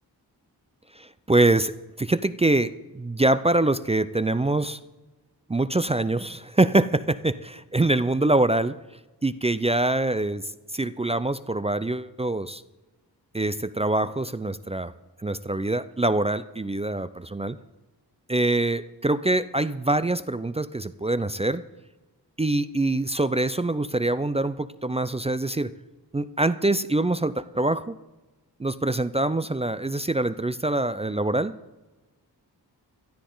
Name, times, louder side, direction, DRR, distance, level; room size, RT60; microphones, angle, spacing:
voice 1, 1.0-4.8 5.5-8.8 9.2-10.4 10.7-12.6 13.3-14.9 15.2-17.6 18.3-21.6 22.4-25.7 26.1-28.0 28.6-31.6, right 2 dB, 15° right, 15 dB, 0.4 m, -24 dB
16.0 x 13.0 x 3.9 m, 1.2 s
cardioid pair, 60°, 40 cm